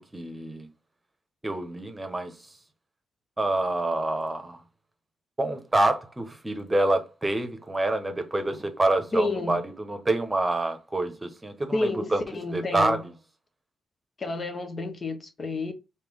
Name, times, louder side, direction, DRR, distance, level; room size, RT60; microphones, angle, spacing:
voice 1, 0.1-0.7 1.4-2.3 3.4-4.6 5.4-12.2 12.5-13.0, right 2 dB, 20° right, 1.0 m, -27 dB
voice 2, 9.1-9.6 11.7-13.0 14.2-15.7, left 2 dB, 45° left, 0.9 m, -30 dB
3.4 x 2.8 x 3.4 m
hypercardioid pair, 50°, 0 cm